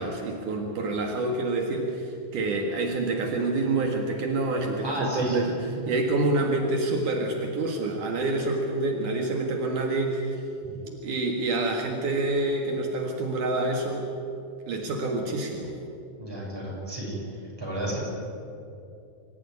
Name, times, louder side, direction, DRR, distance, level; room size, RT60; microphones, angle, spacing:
voice 1, 0.0-5.5 5.9-10.4 10.8-14.1 14.7-15.7, right 2 dB, 70° right, 1 dB, 3.3 m, -27 dB
voice 2, 4.8-5.4 16.2-17.2 17.6-18.0, right 1 dB, 5° right, -4 dB, 7.2 m, -31 dB
25.5 x 14.5 x 9.7 m, 2.7 s
omnidirectional pair, 3.8 m